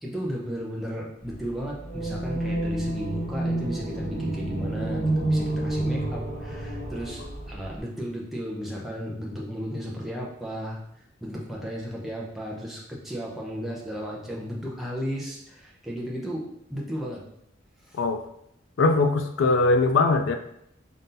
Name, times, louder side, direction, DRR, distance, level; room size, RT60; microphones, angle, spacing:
voice 1, 0.0-10.8 11.2-17.2 17.8-18.0, equal, ahead, -4 dB, 0.6 m, -34 dB
sound 1, 1.8-7.8, right 1 dB, 35° right, 1.3 m, -29 dB
voice 2, 18.8-20.4, left 3 dB, 75° left, 6 dB, 0.4 m, -21 dB
4.0 x 2.6 x 3.8 m, 0.76 s
head